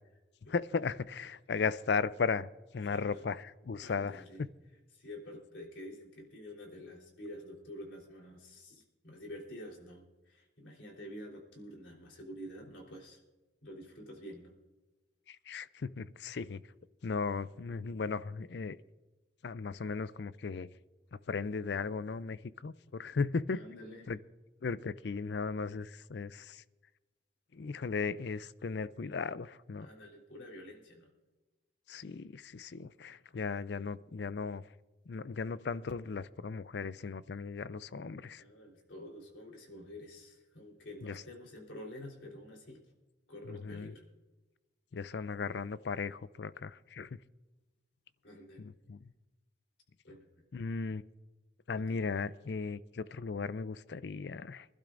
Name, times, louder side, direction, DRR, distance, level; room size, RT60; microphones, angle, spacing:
voice 1, 0.5-4.5 15.3-16.6 17.0-18.8 19.4-20.7 21.3-23.6 24.1-24.2 24.6-26.6 27.5-29.9 31.9-34.6 35.1-38.4 41.0-41.2 43.5-43.9 44.9-47.1 48.6-49.1 50.5-51.0 51.7-54.7, left 4 dB, 60° left, 0.4 m, -36 dB
voice 2, 2.8-3.2 3.8-4.4 4.9-13.2 13.6-14.5 23.5-24.1 29.8-31.1 38.4-42.8 43.3-44.0 48.2-48.7 50.0-50.4 51.8-52.0, left 1 dB, 75° left, 3.6 m, -48 dB
25.0 x 12.0 x 2.6 m
head